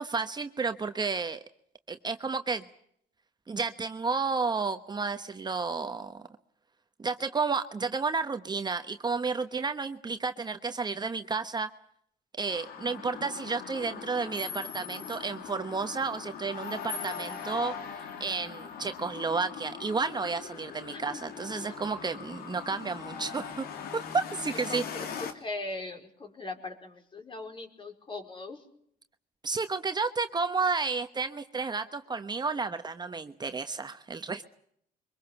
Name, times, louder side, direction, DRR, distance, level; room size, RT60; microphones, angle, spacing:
voice 1, 0.0-1.4 1.9-2.6 3.5-6.2 7.0-11.7 12.4-17.7 18.2-23.7 23.9-24.8 29.4-34.5, right 4 dB, 30° right, 8 dB, 1.1 m, -31 dB
sound 1, 12.5-25.3, left 7 dB, 80° left, 2.7 m, -41 dB
voice 2, 20.9-21.3 21.6-21.7 24.7-28.6, left 2 dB, 35° left, 3 dB, 4.8 m, -40 dB
24.0 x 21.5 x 7.1 m, 0.70 s
cardioid pair, 95°, 15 cm